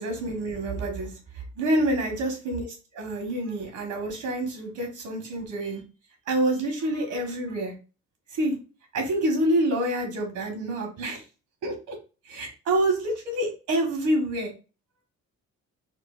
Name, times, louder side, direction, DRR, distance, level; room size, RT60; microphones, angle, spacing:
voice 1, 0.0-5.8 6.3-7.7 8.3-8.6 8.9-11.2 11.6-11.9 12.2-14.5, right 1 dB, 75° right, 3 dB, 1.4 m, -27 dB
4.5 x 2.3 x 2.5 m, 0.32 s
cardioid pair, 90°, 30 cm